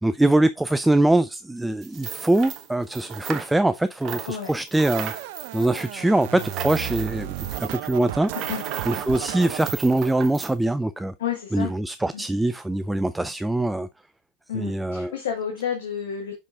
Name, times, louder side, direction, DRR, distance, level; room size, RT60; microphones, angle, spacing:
voice 1, 0.0-5.1 5.5-8.3 8.9-11.1 11.5-13.9 14.6-15.1, right 1 dB, 5° right, 0.3 m, -23 dB
sound 1, 1.8-3.8 4.0-10.5, right 9 dB, 40° right, 1.1 m, -36 dB
Scratching (performance technique), 4.9-9.7, right 15 dB, 60° right, 0.6 m, -34 dB
voice 2, 11.2-11.7 12.1-12.2 14.5-16.5, left 8 dB, 70° left, 1.6 m, -30 dB
6.3 x 5.5 x 3.5 m
hypercardioid pair, 95°, 0 cm